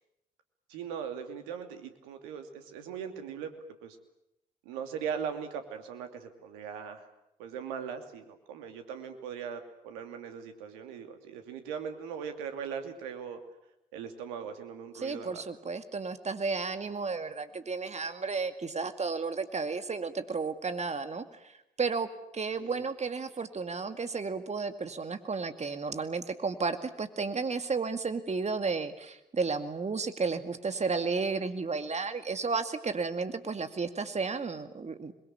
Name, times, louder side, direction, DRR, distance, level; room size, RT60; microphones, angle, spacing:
voice 1, 0.7-3.5 3.8-4.0 4.6-7.1 7.4-13.4 13.9-15.4 22.6-22.8, right 7 dB, 80° right, 7 dB, 2.7 m, -39 dB
voice 2, 14.9-35.1, right 4 dB, 35° right, 9 dB, 2.3 m, -33 dB
27.5 x 22.0 x 8.8 m, 0.84 s
hypercardioid pair, 45°, 21 cm